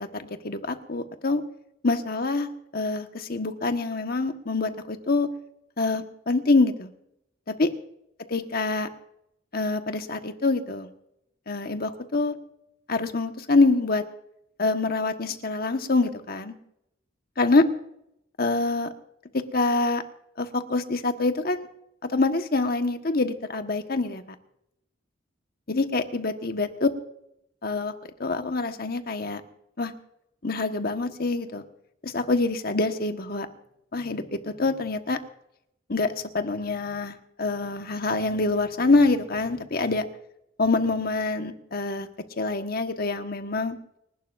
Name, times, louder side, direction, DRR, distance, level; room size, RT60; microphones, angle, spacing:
voice 1, 0.1-1.4 1.8-5.3 5.8-6.9 7.5-7.7 8.3-8.9 9.5-10.9 11.5-12.3 12.9-14.0 14.6-16.5 17.4-17.6 18.4-18.9 19.3-20.0 20.4-21.7 22.0-24.2 25.7-26.9 27.6-27.9 28.2-29.4 29.8-29.9 30.4-31.6 32.0-33.5 33.9-35.2 35.9-40.0 40.6-42.1 42.4-43.8, left 3 dB, 55° left, 7 dB, 1.3 m, -25 dB
30.0 x 12.0 x 2.6 m, 0.79 s
head